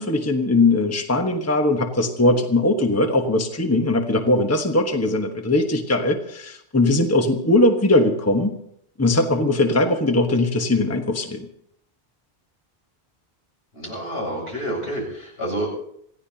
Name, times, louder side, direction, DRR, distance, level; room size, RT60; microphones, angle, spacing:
voice 1, 0.0-8.6 9.0-11.5, left 2 dB, 15° left, 4 dB, 1.2 m, -20 dB
voice 2, 13.7-15.7, right 1 dB, 80° left, -2 dB, 7.7 m, -28 dB
27.0 x 16.5 x 2.9 m, 0.71 s
omnidirectional pair, 1.0 m